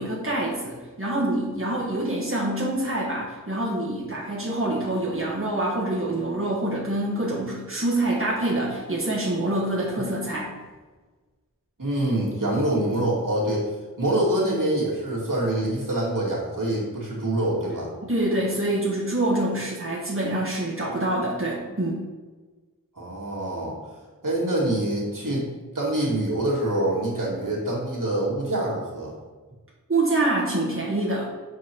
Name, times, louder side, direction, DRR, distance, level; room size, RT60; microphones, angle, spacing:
voice 1, 0.0-10.5 18.0-22.0 29.9-31.3, right 1 dB, 40° right, -6 dB, 1.7 m, -26 dB
voice 2, 11.8-13.7 14.0-17.9 23.0-23.8 24.2-29.1, right 1 dB, 70° right, -6 dB, 2.4 m, -25 dB
7.7 x 4.7 x 4.6 m, 1.3 s
wide cardioid pair, 45°, 34 cm